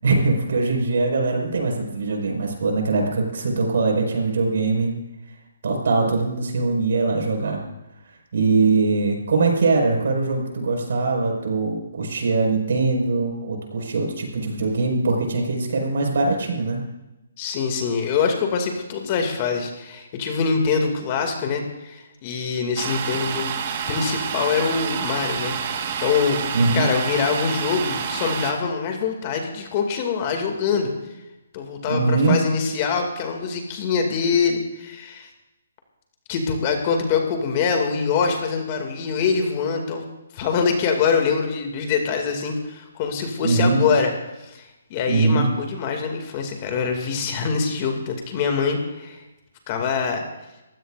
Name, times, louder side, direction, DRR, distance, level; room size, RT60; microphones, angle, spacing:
voice 1, 0.0-4.9 5.6-7.6 8.3-16.8 26.5-26.9 31.9-32.4 43.4-43.8 45.1-45.5, right 3 dB, 65° right, 1 dB, 5.3 m, -22 dB
voice 2, 17.4-23.5 23.9-26.4 26.7-30.9 31.5-35.3 36.3-40.0 40.3-44.1 44.4-49.2 49.7-50.2, left 5 dB, 30° left, 3 dB, 2.4 m, -24 dB
Domestic sounds home sounds, 22.8-28.5, right 7 dB, 40° right, 1.5 m, -28 dB
24.0 x 15.5 x 2.6 m, 0.98 s
hypercardioid pair, 155°, 0 cm